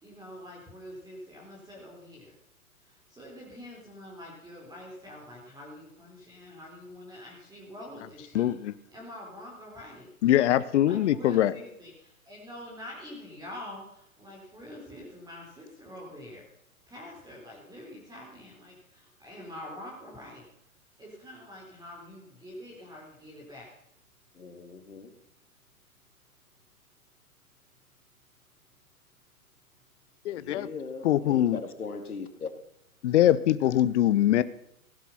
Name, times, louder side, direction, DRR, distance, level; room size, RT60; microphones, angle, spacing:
voice 1, 0.0-2.3 3.1-8.5 8.9-10.1 10.8-16.4 16.9-20.4 21.0-23.7, left 1 dB, 10° right, 4.0 m, -45 dB
voice 2, 8.3-8.7 10.2-11.5 30.2-30.7 31.0-31.6 33.0-34.4, left 12 dB, 50° left, 0.8 m, -23 dB
voice 3, 24.4-25.1 30.4-32.5, left 4 dB, 90° left, 2.3 m, -39 dB
16.5 x 11.5 x 5.8 m
hypercardioid pair, 125°, 43 cm